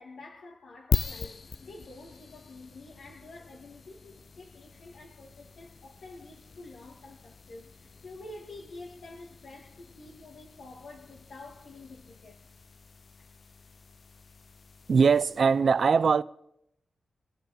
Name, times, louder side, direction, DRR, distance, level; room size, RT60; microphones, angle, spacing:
voice 1, 0.0-12.5 13.2-13.3, left 2 dB, 85° left, 2.0 m, -48 dB
sound 1, 0.9-15.6, left 4 dB, 45° left, 0.4 m, -40 dB
voice 2, 14.9-16.2, right 5 dB, 60° right, 0.5 m, -21 dB
23.5 x 9.4 x 4.2 m
wide cardioid pair, 100°, 0 cm